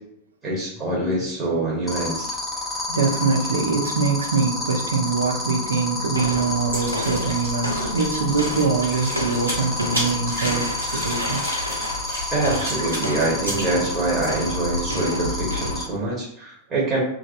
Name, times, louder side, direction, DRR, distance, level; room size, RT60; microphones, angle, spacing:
voice 1, 0.4-2.3 12.3-17.0, right 2 dB, 25° right, -6 dB, 1.0 m, -25 dB
sound 1, 1.9-15.8, left 3 dB, 5° left, 0.8 m, -30 dB
voice 2, 2.6-11.7, right 4 dB, 70° right, 2 dB, 0.5 m, -24 dB
sound 2, 6.1-16.0, left 1 dB, 90° left, 0.4 m, -31 dB
sound 3, 6.7-14.3, equal, 90° right, 1.2 m, -33 dB
2.9 x 2.5 x 2.5 m, 0.73 s
figure-of-eight pair, 90°, 0 cm